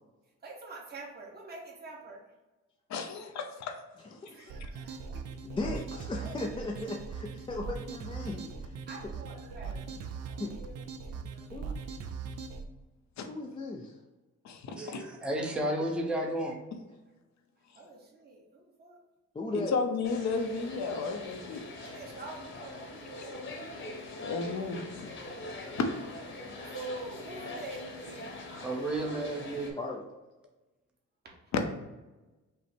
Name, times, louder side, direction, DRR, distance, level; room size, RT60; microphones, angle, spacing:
voice 1, 0.4-2.2 4.3-5.2 6.2-6.4 8.9-11.4 14.8-15.0 17.7-19.0 21.7-23.4 26.6-28.5 31.2-31.3, right 3 dB, 35° right, -1 dB, 1.2 m, -46 dB
voice 2, 2.9-3.8 13.2-13.3 14.4-15.0 16.7-16.8 19.5-21.6 23.2-23.3 24.2-25.1 25.8-25.9 31.5-31.6, left 4 dB, 65° left, 5 dB, 0.7 m, -33 dB
voice 3, 4.2-4.7 5.4-8.8 9.0-9.1 10.4-10.6 11.5-11.7 13.2-14.0 19.3-19.8 26.4-26.6 29.8-30.0, left 2 dB, 20° left, -1 dB, 0.4 m, -37 dB
sound 1, 4.5-12.6, right 5 dB, 60° right, 0.5 m, -40 dB
voice 4, 14.8-16.6 28.6-29.8, right 1 dB, 5° right, 0 dB, 0.7 m, -32 dB
sound 2, 20.0-29.7, left 2 dB, 40° left, 1.0 m, -43 dB
5.6 x 2.1 x 4.3 m, 1.1 s
cardioid pair, 140°, 29 cm